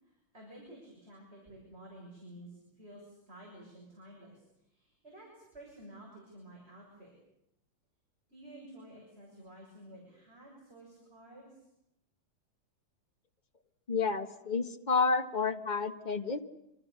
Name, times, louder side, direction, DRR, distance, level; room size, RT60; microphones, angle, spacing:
voice 1, 0.0-7.2 8.3-11.7, right 1 dB, 30° right, -2 dB, 7.2 m, -52 dB
voice 2, 13.9-16.4, left 4 dB, 25° left, 6 dB, 1.4 m, -30 dB
27.0 x 26.5 x 6.9 m, 0.84 s
omnidirectional pair, 2.0 m